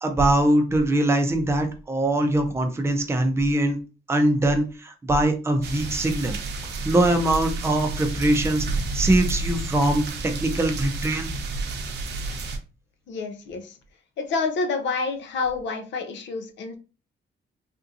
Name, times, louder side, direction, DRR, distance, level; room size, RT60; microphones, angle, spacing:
voice 1, 0.0-3.8 4.1-6.4 6.8-11.3, right 1 dB, 15° right, 5 dB, 0.5 m, -22 dB
sound 1, 5.6-12.6, right 3 dB, 65° right, 0.7 m, -30 dB
voice 2, 13.1-13.7 14.2-16.8, left 4 dB, 75° left, 7 dB, 0.6 m, -28 dB
3.5 x 2.5 x 2.7 m, 0.33 s
wide cardioid pair, 160°, 19 cm